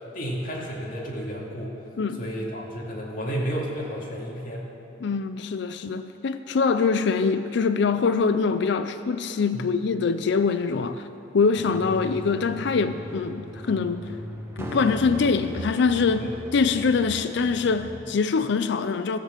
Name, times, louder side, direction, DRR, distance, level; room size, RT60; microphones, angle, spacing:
voice 1, 0.1-1.8 2.2-4.7 9.5-9.7 16.2-16.3 17.9-18.1, equal, 50° left, -3 dB, 2.3 m, -32 dB
voice 2, 5.0-11.1 11.3-14.1 14.6-19.2, left 5 dB, 65° left, 11 dB, 0.4 m, -24 dB
sound 1, 11.5-17.9, equal, 15° right, 1.1 m, -37 dB
13.5 x 7.5 x 7.3 m, 2.8 s
head